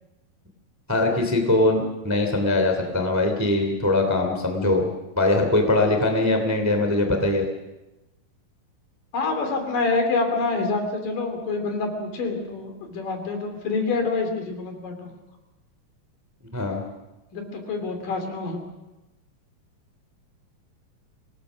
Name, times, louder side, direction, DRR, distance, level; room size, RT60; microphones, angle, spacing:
voice 1, 0.9-4.9 5.2-7.5 16.5-16.8, left 2 dB, 5° right, 4 dB, 2.0 m, -22 dB
voice 2, 9.1-15.1 17.3-18.6, left 3 dB, 65° left, 5 dB, 4.3 m, -26 dB
25.5 x 19.0 x 6.3 m, 1.0 s
omnidirectional pair, 4.3 m